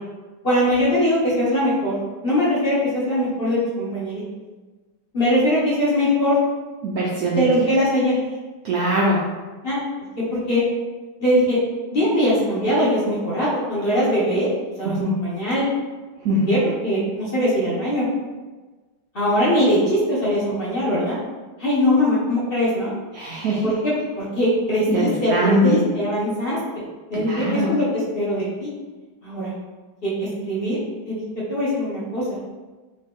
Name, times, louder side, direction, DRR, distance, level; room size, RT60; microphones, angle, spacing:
voice 1, 0.4-1.9 2.2-4.2 5.1-6.4 7.4-8.2 9.6-10.0 10.3-10.6 11.2-11.6 11.9-14.5 14.8-15.6 16.5-18.1 19.1-21.2 21.6-22.9 23.6-26.6 27.1-28.7 29.2-29.5 30.0-30.8 31.0-31.2 31.5-32.4, equal, 50° left, -8 dB, 0.7 m, -21 dB
voice 2, 6.8-7.7 8.6-9.3 15.0-15.1 16.2-16.5 23.1-23.7 24.9-25.9 27.1-27.7, right 1 dB, 85° right, -4 dB, 0.8 m, -22 dB
3.2 x 2.8 x 3.4 m, 1.3 s
omnidirectional pair, 2.2 m